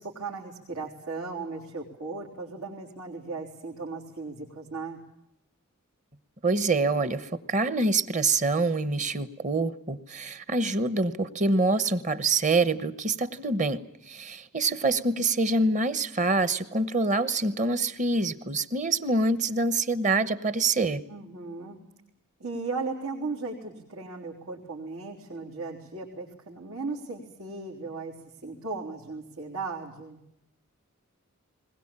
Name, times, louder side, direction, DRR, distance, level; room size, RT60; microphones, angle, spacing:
voice 1, 0.0-5.0 21.1-21.8 22.4-28.1 28.4-30.2, right 3 dB, 90° right, -3 dB, 4.0 m, -36 dB
voice 2, 6.4-13.8 14.1-21.0, right 3 dB, 35° right, 15 dB, 1.1 m, -26 dB
21.0 x 20.5 x 8.8 m, 0.83 s
head